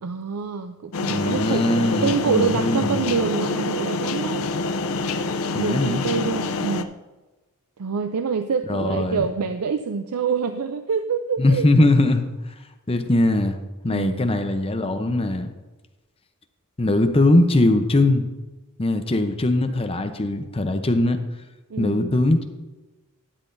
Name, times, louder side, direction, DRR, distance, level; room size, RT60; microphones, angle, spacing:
voice 1, 0.0-4.5 5.5-6.9 7.8-11.7 13.9-14.3 21.7-22.2, right 5 dB, 90° right, 8 dB, 0.5 m, -26 dB
sound 1, 0.9-6.8, left 3 dB, 65° left, 0.5 m, -26 dB
voice 2, 1.1-3.0 5.5-6.0 8.7-9.2 11.4-12.3 12.9-13.6 13.8-15.5 16.8-18.3 18.8-21.2 21.8-22.4, left 2 dB, 25° left, 7 dB, 0.7 m, -20 dB
12.5 x 9.6 x 2.7 m, 1.2 s
head